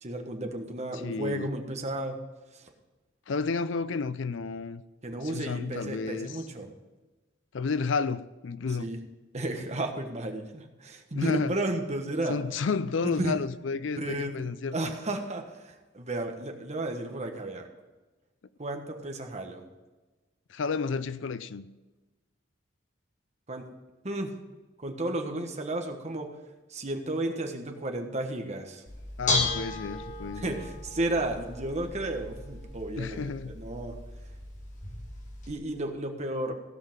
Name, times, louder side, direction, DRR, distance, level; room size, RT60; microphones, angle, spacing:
voice 1, 0.0-2.2 2.5-2.6 5.0-6.7 8.8-9.0 9.3-12.4 13.0-13.4 14.0-14.3 14.7-17.7 18.6-19.6 23.5-23.7 24.0-24.4 24.8-26.3 26.7-28.8 30.3-33.9 35.5-36.6, right 1 dB, 35° right, 1.4 m, -33 dB
voice 2, 1.0-1.5 3.3-4.8 5.2-6.4 7.5-8.9 11.1-11.6 12.3-14.9 20.5-21.7 29.2-30.6 33.0-33.5, left 4 dB, 70° left, 0.5 m, -31 dB
Bell / Dishes pots and pans, 28.9-35.5, left 3 dB, 40° left, 2.3 m, -35 dB
16.0 x 5.7 x 7.3 m
head